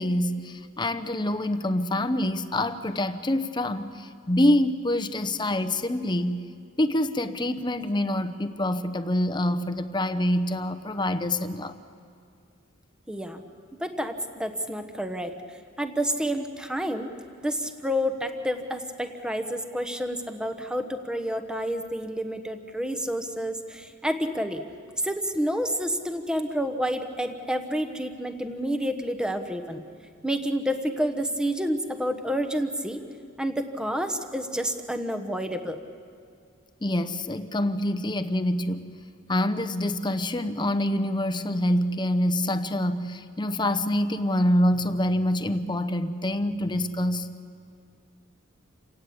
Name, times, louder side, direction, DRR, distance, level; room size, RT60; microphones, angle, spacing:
voice 1, 0.0-6.4 6.8-11.8 36.8-38.9 39.3-47.3, left 1 dB, 25° left, 10 dB, 0.9 m, -26 dB
voice 2, 13.1-13.4 13.7-15.3 15.8-17.1 17.4-24.6 25.0-29.8 30.2-33.0 33.4-35.8, equal, 5° right, 6 dB, 1.2 m, -29 dB
29.0 x 17.5 x 8.6 m, 2.3 s
head